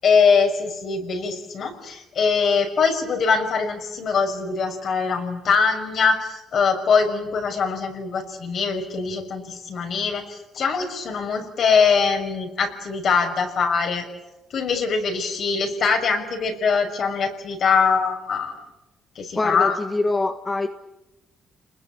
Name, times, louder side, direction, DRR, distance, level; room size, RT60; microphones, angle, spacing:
voice 1, 0.0-14.1 14.5-18.5 19.1-19.8, left 5 dB, 60° left, 6.3 m, -22 dB
voice 2, 19.3-20.7, left 2 dB, 25° left, 1.6 m, -24 dB
30.0 x 21.0 x 8.9 m
cardioid pair, 90°, 0 cm